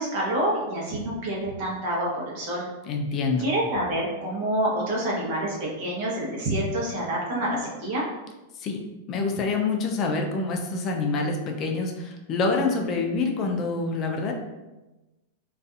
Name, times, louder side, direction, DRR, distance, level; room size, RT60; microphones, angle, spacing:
voice 1, 0.0-2.6 3.4-8.0, right 1 dB, 60° right, -4 dB, 0.9 m, -27 dB
voice 2, 2.8-3.5 8.6-8.8 9.1-14.3, left 3 dB, 40° left, 2 dB, 0.4 m, -26 dB
2.5 x 2.3 x 2.4 m, 1.1 s
hypercardioid pair, 105°, 0 cm